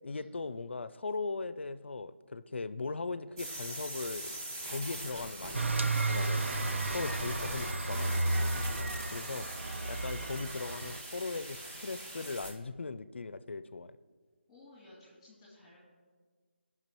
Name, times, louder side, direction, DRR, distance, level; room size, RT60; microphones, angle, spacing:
voice 1, 0.0-4.4 4.6-6.5 6.9-8.4 9.1-9.5 9.8-13.9, left 3 dB, 70° left, 13 dB, 0.4 m, -39 dB
sound 1, 3.4-12.5, right 1 dB, 20° right, 1.0 m, -41 dB
sound 2, 5.5-11.0, right 2 dB, 75° right, 0.6 m, -33 dB
voice 2, 8.7-10.2 14.5-15.8, left 1 dB, 5° left, -10 dB, 2.4 m, -57 dB
16.5 x 5.9 x 3.0 m, 1.5 s
figure-of-eight pair, 165°, 7 cm